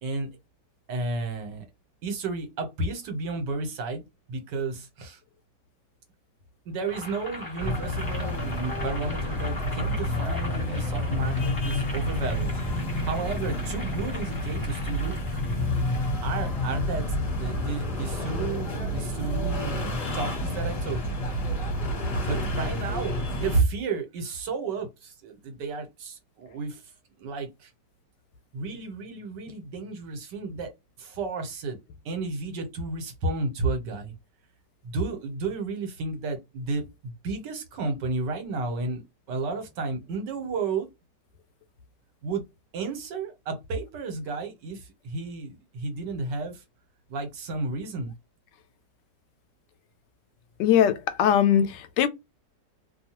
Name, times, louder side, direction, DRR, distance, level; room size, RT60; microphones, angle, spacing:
voice 1, 0.0-0.3 0.9-1.6 2.0-4.0 4.3-5.2 6.6-12.5 13.0-15.4 16.2-21.2 22.2-26.8 27.2-27.7 28.5-30.7 31.0-31.8 32.0-34.1 34.8-39.0 39.3-40.9 42.2-42.4 42.7-46.6 47.1-48.1, right 3 dB, 75° right, 1.5 m, -32 dB
Boiling, 6.8-16.2, left 2 dB, 15° left, 1.2 m, -40 dB
sound 1, 7.6-23.6, left 1 dB, 40° left, 1.2 m, -29 dB
voice 2, 50.6-52.1, left 9 dB, 80° left, 1.2 m, -21 dB
2.9 x 2.3 x 2.8 m
omnidirectional pair, 1.9 m